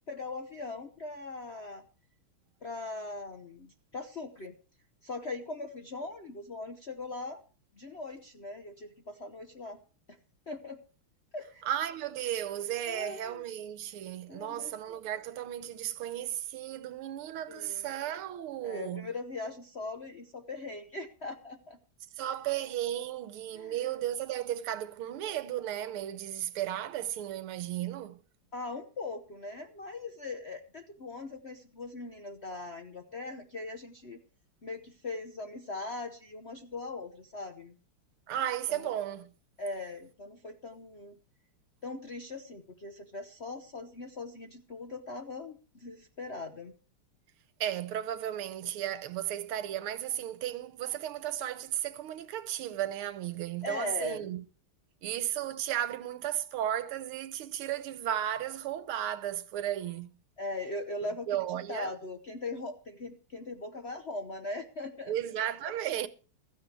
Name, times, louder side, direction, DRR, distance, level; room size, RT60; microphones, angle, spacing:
voice 1, 0.1-1.8 2.6-4.5 5.0-7.4 7.8-9.8 10.1-10.2 10.5-10.8 11.3-11.6 12.8-13.4 14.3-14.7 17.5-17.9 18.6-21.8 23.5-23.9 28.5-34.2 34.6-37.8 38.7-38.9 39.6-41.1 41.8-46.7 53.6-54.4 60.4-61.3 61.7-65.1, left 3 dB, 45° left, 0.8 m, -40 dB
voice 2, 11.6-19.1 22.2-28.2 38.3-39.3 47.6-54.4 55.0-60.2 61.3-62.0 65.1-66.1, right 11 dB, 80° right, 1.7 m, -34 dB
16.0 x 14.0 x 3.3 m
omnidirectional pair, 2.4 m